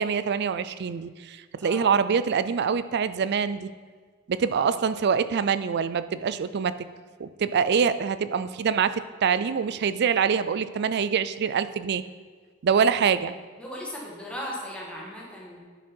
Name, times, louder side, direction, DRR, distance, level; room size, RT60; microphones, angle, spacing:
voice 1, 0.0-3.7 4.3-6.7 7.2-12.0 12.6-13.3, right 6 dB, 50° right, 13 dB, 0.4 m, -25 dB
voice 2, 1.6-2.0 4.5-4.8 13.6-15.6, equal, 5° left, -4 dB, 1.9 m, -37 dB
11.0 x 6.2 x 4.5 m, 1.5 s
head